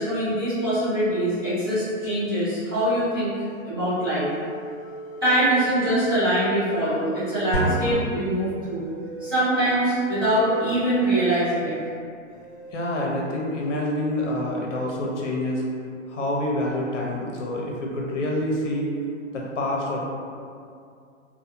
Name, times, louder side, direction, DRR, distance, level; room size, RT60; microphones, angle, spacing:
voice 1, 0.0-3.3 3.6-4.3 5.2-8.9 9.2-11.8, right 1 dB, 20° right, -15 dB, 0.5 m, -23 dB
sound 1, 3.8-11.9 12.3-12.7, right 2 dB, 20° left, 0.7 m, -39 dB
sound 2, 7.5-9.2, right 1 dB, 40° left, 1.1 m, -29 dB
voice 2, 12.7-15.6 16.1-18.9 19.3-20.0, left 1 dB, 65° left, -2 dB, 0.7 m, -27 dB
2.7 x 2.2 x 2.6 m, 2.4 s
hypercardioid pair, 175°, 39 cm